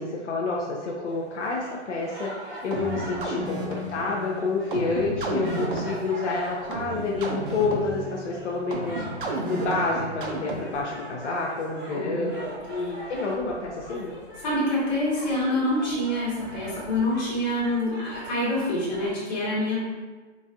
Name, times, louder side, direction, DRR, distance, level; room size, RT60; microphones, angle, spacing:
voice 1, 0.0-14.1, left 3 dB, 75° left, -2 dB, 0.6 m, -29 dB
sound 1, 1.0-19.1, right 1 dB, 10° right, 0.7 m, -42 dB
sound 2, 2.7-10.9, right 2 dB, 45° right, 0.5 m, -32 dB
voice 2, 11.9-12.3 14.4-19.8, left 1 dB, 40° left, -7 dB, 1.2 m, -26 dB
4.0 x 2.3 x 2.6 m, 1.3 s
hypercardioid pair, 170°, 36 cm